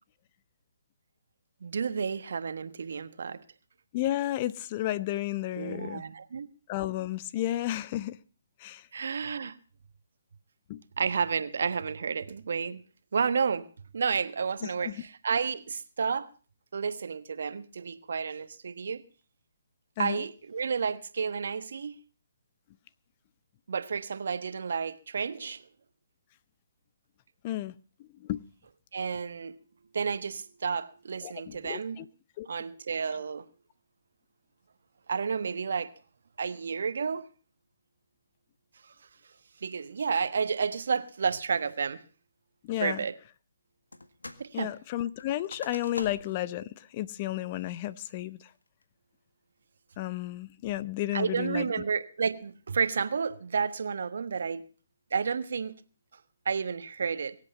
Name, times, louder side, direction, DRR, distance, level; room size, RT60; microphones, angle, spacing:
voice 1, 1.6-3.4 5.6-6.5 8.9-9.6 11.0-12.8 13.1-13.7 13.9-16.3 16.7-19.0 20.0-21.9 23.7-25.6 28.9-29.5 29.9-32.0 32.4-33.4 35.1-35.9 36.4-37.2 39.6-42.0 42.8-43.1 44.4-44.7 51.1-54.6 55.1-55.8 56.4-57.4, right 6 dB, 60° right, 1.3 m, -31 dB
voice 2, 3.9-6.0 6.7-8.2 8.6-8.9 10.7-10.8 14.8-14.9 20.0-20.2 27.4-27.7 28.2-28.4 31.2-32.1 32.4-32.5 42.6-43.0 44.5-48.5 50.0-51.7, left 14 dB, 35° left, 0.7 m, -32 dB
sound 1, 43.9-44.5 44.8-46.5 46.9-47.0 47.5-47.9 48.4-48.8, left 2 dB, 90° left, 1.7 m, -44 dB
23.5 x 8.3 x 5.4 m
figure-of-eight pair, 140°, 0 cm